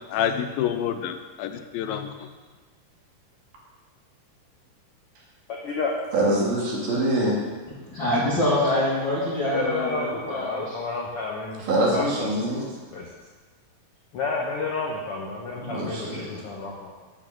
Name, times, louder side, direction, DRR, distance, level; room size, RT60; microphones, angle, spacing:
voice 1, 0.1-2.3, left 9 dB, 85° left, 9 dB, 2.5 m, -28 dB
voice 2, 6.1-7.4 11.7-12.6 15.6-16.4, right 1 dB, 85° right, -4 dB, 4.2 m, -24 dB
voice 3, 7.9-10.8, left 1 dB, 40° left, -9 dB, 2.2 m, -25 dB
voice 4, 9.3-11.6 11.9-12.3 12.9-13.1 14.1-16.9, left 3 dB, 70° left, -2 dB, 1.4 m, -30 dB
9.4 x 6.1 x 7.6 m, 1.3 s
omnidirectional pair, 4.1 m